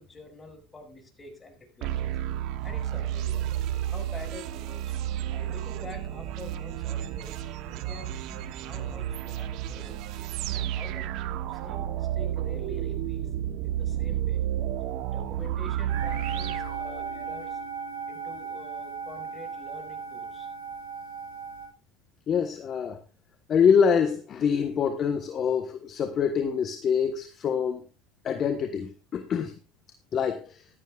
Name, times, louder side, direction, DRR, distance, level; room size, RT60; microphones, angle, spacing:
voice 1, 0.0-2.1 2.6-3.5 3.9-5.0 5.3-10.0 10.5-11.2 11.5-13.2 13.6-14.4 15.1-17.6 18.1-20.5, left 3 dB, 20° left, 3 dB, 6.5 m, -47 dB
sound 1, 1.8-17.4, right 11 dB, 65° right, 1.0 m, -31 dB
sound 2, 15.9-21.7, right 5 dB, 85° right, 5.5 m, -37 dB
voice 2, 22.3-23.0 23.5-27.9 28.2-29.5 30.1-30.6, left 7 dB, 40° left, 7 dB, 1.3 m, -25 dB
15.0 x 13.0 x 2.5 m, 0.30 s
hypercardioid pair, 90°, 0 cm